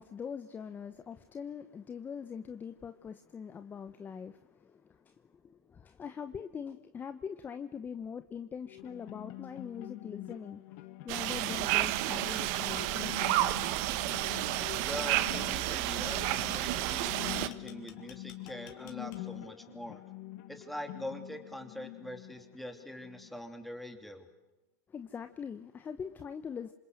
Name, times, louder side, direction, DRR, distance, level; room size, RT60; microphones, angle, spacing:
voice 1, 0.0-10.8 11.0-13.6 24.9-26.7, left 7 dB, 20° left, 1.0 m, -43 dB
sound 1, 8.7-23.6, left 16 dB, 55° left, 1.6 m, -46 dB
sound 2, 11.1-17.5, right 17 dB, 55° right, 1.3 m, -31 dB
sound 3, 11.9-19.5, left 12 dB, 70° left, 3.2 m, -54 dB
voice 2, 14.8-20.0 20.5-24.3, left 1 dB, ahead, 3.0 m, -43 dB
27.0 x 26.0 x 7.9 m
supercardioid pair, 135°, 10 cm